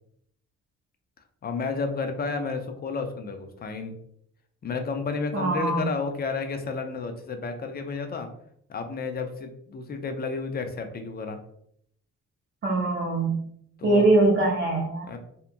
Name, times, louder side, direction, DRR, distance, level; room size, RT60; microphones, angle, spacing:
voice 1, 1.4-3.9 4.6-8.3 8.7-11.4 13.8-14.1 15.1-15.2, left 4 dB, 35° left, 7 dB, 0.4 m, -31 dB
voice 2, 5.3-5.9 12.6-13.4 13.8-15.1, right 2 dB, 40° right, -1 dB, 0.6 m, -22 dB
2.8 x 2.2 x 2.5 m, 0.69 s
cardioid pair, 90°, 30 cm